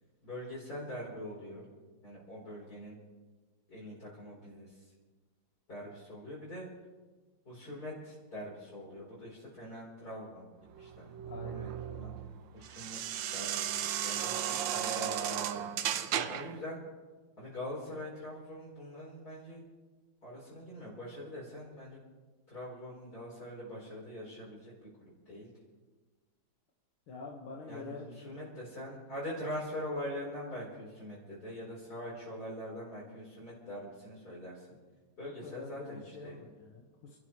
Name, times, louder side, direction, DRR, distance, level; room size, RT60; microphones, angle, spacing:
voice 1, 0.2-1.7 2.0-3.0 3.7-4.8 5.7-6.7 7.4-11.2 11.4-12.1 12.5-13.0 13.3-16.8 17.4-19.6 20.2-22.0 22.5-25.5 27.7-34.7 35.2-36.3, equal, 45° left, -8 dB, 4.7 m, -43 dB
sound 1, 10.7-16.6, right 10 dB, 70° right, 1.3 m, -35 dB
voice 2, 11.2-11.7 27.1-28.1 35.2-37.2, left 4 dB, 90° left, -2 dB, 2.5 m, -46 dB
28.5 x 12.5 x 3.2 m, 1.3 s
omnidirectional pair, 2.2 m